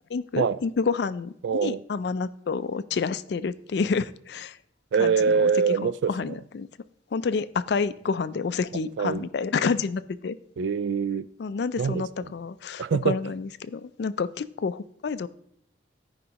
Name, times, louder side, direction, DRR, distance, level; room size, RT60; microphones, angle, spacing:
voice 1, 0.1-4.6 5.0-5.5 5.8-6.7 7.1-10.4 11.4-15.3, left 5 dB, 60° left, 15 dB, 0.4 m, -29 dB
voice 2, 1.4-1.8 4.9-6.4 9.0-9.3 10.6-11.3 11.8-12.0 12.8-13.2, right 6 dB, 70° right, 17 dB, 0.3 m, -24 dB
14.5 x 5.2 x 2.9 m, 0.67 s
head